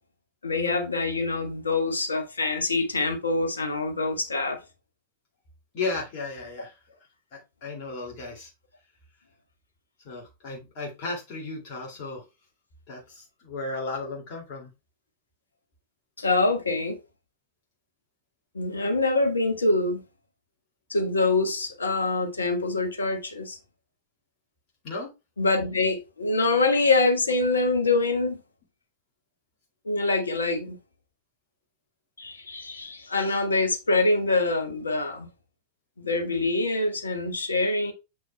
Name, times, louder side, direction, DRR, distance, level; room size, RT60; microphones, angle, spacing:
voice 1, 0.4-4.6 16.2-17.0 18.5-20.0 20.9-23.6 25.4-28.4 29.8-30.8 32.2-35.3 36.0-37.9, left 3 dB, 75° left, 1.4 m, -25 dB
voice 2, 5.7-6.7 7.3-8.5 10.0-12.2 12.9-14.7 24.8-25.1, left 3 dB, 45° left, 2.4 m, -34 dB
7.0 x 6.1 x 2.2 m
figure-of-eight pair, 90°, 0 cm